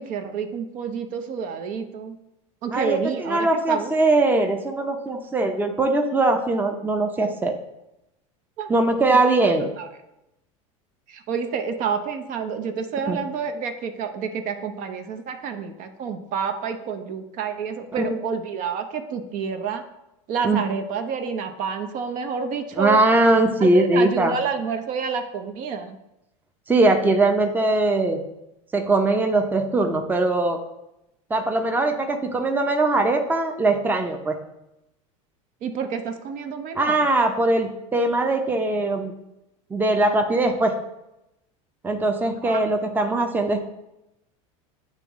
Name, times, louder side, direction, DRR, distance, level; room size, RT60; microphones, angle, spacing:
voice 1, 0.0-2.2 2.6-3.9 8.6-8.7 9.8-9.9 11.1-19.8 20.3-23.0 23.6-26.0 35.6-37.0 42.4-42.6, right 6 dB, 50° right, 7 dB, 0.7 m, -29 dB
voice 2, 2.7-7.6 8.7-9.7 13.1-13.2 17.9-18.2 20.4-20.8 22.8-24.3 26.7-28.2 28.7-30.6 31.3-34.4 36.7-39.1 39.7-40.7 41.8-43.6, right 2 dB, 10° right, 5 dB, 0.6 m, -21 dB
9.0 x 3.1 x 3.6 m, 0.90 s
hypercardioid pair, 100°, 17 cm